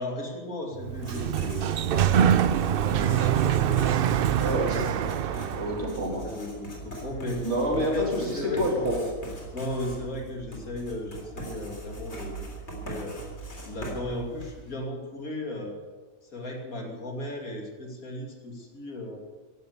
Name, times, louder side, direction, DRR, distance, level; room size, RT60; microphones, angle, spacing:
voice 1, 0.0-4.3 6.1-8.8 9.5-12.3 12.7-13.2 13.6-15.8 16.3-19.2, left 1 dB, 65° left, 0 dB, 3.2 m, -36 dB
Sliding door, 0.8-5.9, right 9 dB, 85° right, 0.5 m, -25 dB
Writing, 0.9-14.7, right 2 dB, 45° left, 4.0 m, -40 dB
Guitar, 2.9-5.5, right 16 dB, 65° right, 0.9 m, -30 dB
voice 2, 4.4-5.1 5.4-6.2 7.4-9.0, equal, 45° right, -1 dB, 3.5 m, -28 dB
16.0 x 12.0 x 6.9 m, 1.5 s
omnidirectional pair, 1.6 m